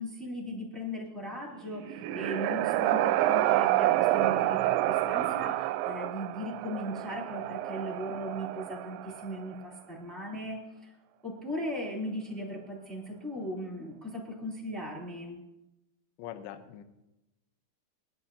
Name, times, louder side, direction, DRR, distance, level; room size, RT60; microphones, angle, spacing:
voice 1, 0.0-10.9 11.2-15.4, equal, ahead, -3 dB, 2.1 m, -38 dB
sound 1, 1.6-9.4, right 14 dB, 85° right, 2.7 m, -28 dB
voice 2, 16.2-16.8, left 10 dB, 80° left, 7 dB, 2.3 m, -42 dB
21.0 x 12.5 x 2.8 m, 0.95 s
omnidirectional pair, 5.4 m